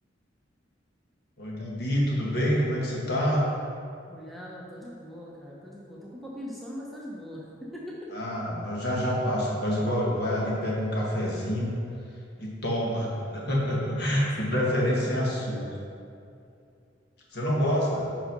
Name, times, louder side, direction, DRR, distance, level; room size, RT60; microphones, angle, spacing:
voice 1, 1.4-3.4 8.1-11.7 12.4-15.6 17.3-18.1, equal, 55° left, -4 dB, 1.6 m, -27 dB
voice 2, 4.1-8.1 14.1-15.1 15.5-15.8, equal, ahead, -6 dB, 0.8 m, -42 dB
5.6 x 5.4 x 5.3 m, 2.5 s
head